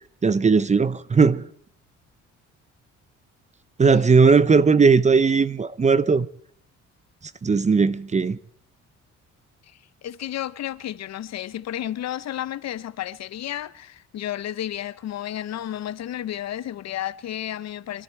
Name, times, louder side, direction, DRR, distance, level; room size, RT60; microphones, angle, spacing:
voice 1, 0.2-1.5 3.8-6.3 7.4-8.4, right 5 dB, 25° right, 0.6 m, -18 dB
voice 2, 10.0-18.0, left 12 dB, 60° left, 0.7 m, -32 dB
24.5 x 12.5 x 4.5 m
cardioid pair, 90°, 30 cm